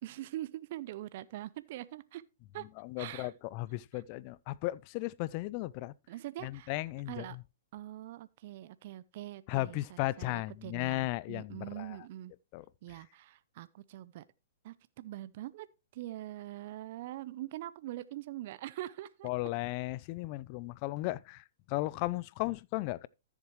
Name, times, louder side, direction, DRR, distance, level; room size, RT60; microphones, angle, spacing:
voice 1, 0.0-2.2 2.5-2.7 3.0-3.3 3.9-4.0 6.1-6.7 7.1-7.4 7.7-12.3 12.8-14.2 14.6-15.7 15.9-19.3, right 14 dB, 50° right, 0.5 m, -43 dB
voice 2, 2.8-5.9 6.4-7.2 9.5-12.0 12.5-12.6 19.2-23.1, left 19 dB, 40° left, 0.4 m, -35 dB
13.5 x 7.3 x 3.1 m
hypercardioid pair, 140°, 0 cm